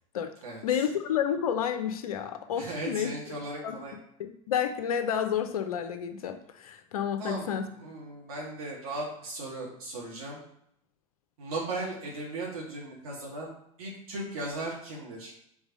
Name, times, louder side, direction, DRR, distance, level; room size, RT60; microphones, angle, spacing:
voice 1, 0.6-3.1 3.6-3.8 4.2-7.6, left 8 dB, 85° left, 8 dB, 0.7 m, -30 dB
voice 2, 2.6-3.9 7.2-10.4 11.4-13.5 13.8-15.3, right 2 dB, 85° right, -3 dB, 2.5 m, -37 dB
4.8 x 3.9 x 5.4 m, 0.72 s
hypercardioid pair, 85°, 18 cm